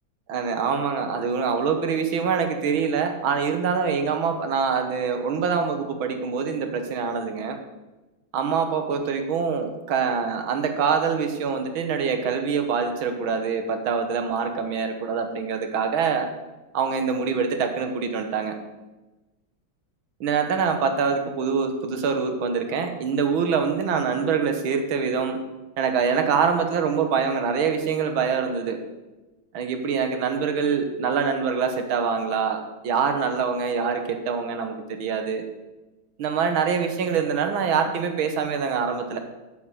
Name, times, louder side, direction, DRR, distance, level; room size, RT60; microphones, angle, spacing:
voice 1, 0.3-7.6 8.3-16.3 16.7-18.5 20.2-25.4 25.8-28.8 29.5-35.4 36.2-39.2, right 6 dB, 80° right, 6 dB, 2.0 m, -25 dB
7.8 x 7.3 x 8.2 m, 1.1 s
omnidirectional pair, 2.2 m